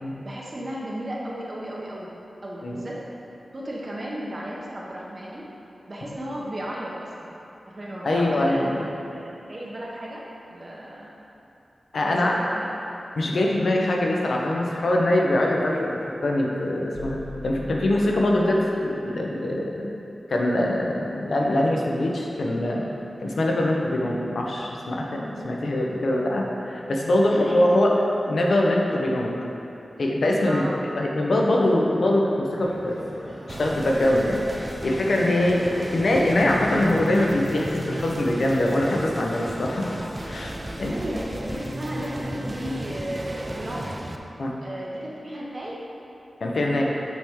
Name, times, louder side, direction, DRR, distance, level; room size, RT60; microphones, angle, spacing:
voice 1, 0.2-2.1 2.4-3.1 3.5-5.5 5.9-7.3 7.7-10.2 10.5-11.1 12.0-12.7 21.0-21.2 27.3-27.6 30.4-30.9 40.9-44.0 44.6-45.8, equal, 35° right, -4 dB, 0.8 m, -34 dB
voice 2, 8.0-8.8 11.9-12.3 13.2-17.2 17.4-19.9 20.3-22.8 23.2-29.3 30.0-30.6 30.9-33.0 33.5-39.9 40.2-40.9 44.4-44.5 46.4-46.8, left 1 dB, 70° left, -1 dB, 0.8 m, -23 dB
sound 1, 16.9-18.8, left 2 dB, 45° left, 1.0 m, -41 dB
sound 2, 32.5-43.8, equal, 55° right, 1.4 m, -44 dB
sound 3, 33.5-44.2, right 1 dB, 20° right, 0.4 m, -35 dB
7.4 x 4.6 x 3.6 m, 2.9 s
wide cardioid pair, 125°, 0 cm